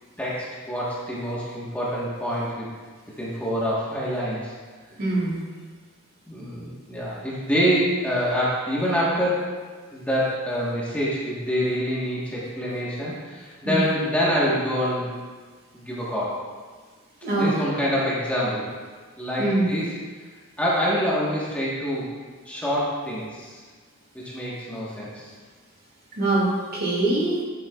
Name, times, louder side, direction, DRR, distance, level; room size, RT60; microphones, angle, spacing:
voice 1, 0.2-2.7 3.2-4.5 6.3-9.5 9.9-15.1 15.7-16.3 17.4-18.7 19.2-19.8 20.6-22.1 22.4-23.6 24.3-25.3, equal, 5° left, -7 dB, 1.3 m, -26 dB
voice 2, 5.0-5.4 13.6-13.8 17.2-17.6 19.4-19.9 26.1-27.4, right 2 dB, 45° right, -5 dB, 2.2 m, -23 dB
9.5 x 8.0 x 2.4 m, 1.5 s
head